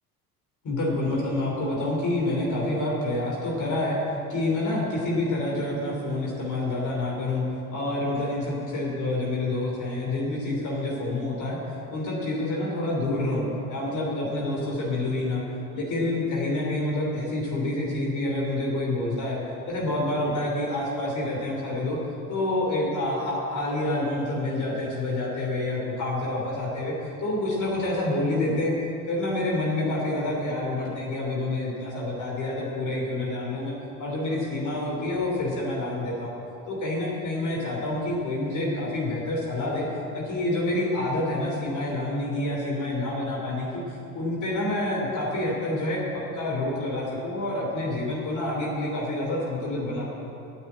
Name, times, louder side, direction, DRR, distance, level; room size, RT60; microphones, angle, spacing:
voice 1, 0.6-4.0 4.3-7.4 7.7-11.6 11.9-13.4 13.7-15.4 15.7-19.4 19.7-22.0 22.3-26.9 27.2-28.7 29.1-33.7 34.0-36.3 36.7-39.9 40.1-50.1, left 2 dB, 40° left, -4 dB, 3.3 m, -28 dB
9.7 x 8.2 x 8.7 m, 2.9 s
hypercardioid pair, 65°, 45 cm